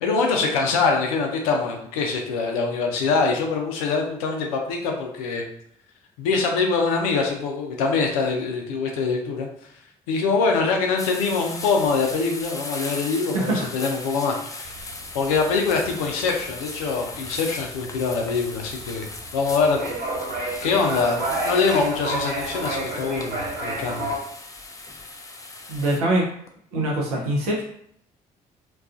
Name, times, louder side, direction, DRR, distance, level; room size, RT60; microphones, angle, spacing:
voice 1, 0.0-5.5 6.2-9.5 10.1-14.9 15.1-19.8 20.6-24.1, left 4 dB, 85° left, 2 dB, 0.4 m, -24 dB
sound 1, 11.0-26.0, left 2 dB, 20° left, 0.4 m, -38 dB
voice 2, 13.3-13.7 25.7-26.3 26.7-27.6, right 1 dB, 90° right, -2 dB, 0.6 m, -23 dB
Quiet race before storm, 14.6-24.2, right 2 dB, 60° right, 1.2 m, -31 dB
2.3 x 2.2 x 2.4 m, 0.68 s
hypercardioid pair, 50°, 18 cm